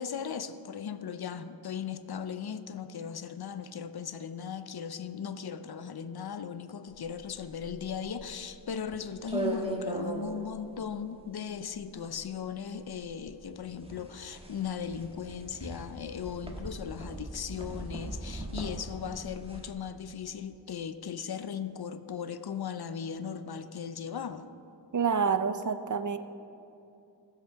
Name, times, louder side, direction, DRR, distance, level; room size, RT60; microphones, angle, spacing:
voice 1, 0.0-24.5, left 7 dB, 60° left, 11 dB, 0.6 m, -37 dB
sound 1, 6.9-19.7, right 2 dB, 15° right, 1.5 m, -39 dB
voice 2, 24.9-26.2, right 6 dB, 45° right, 10 dB, 0.6 m, -27 dB
14.0 x 5.9 x 6.9 m, 2.7 s
cardioid pair, 55°, 43 cm